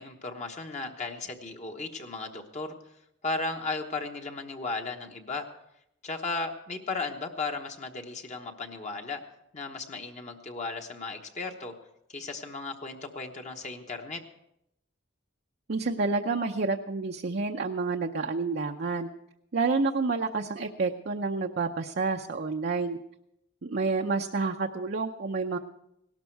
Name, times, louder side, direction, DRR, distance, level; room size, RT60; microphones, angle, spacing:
voice 1, 0.0-2.7 3.2-5.5 6.0-9.2 9.5-11.7 12.1-14.2, left 3 dB, 40° left, 4 dB, 1.1 m, -35 dB
voice 2, 15.7-19.1 19.5-23.0 23.6-25.6, right 4 dB, 55° right, 3 dB, 0.6 m, -29 dB
17.5 x 12.5 x 4.6 m, 0.80 s
head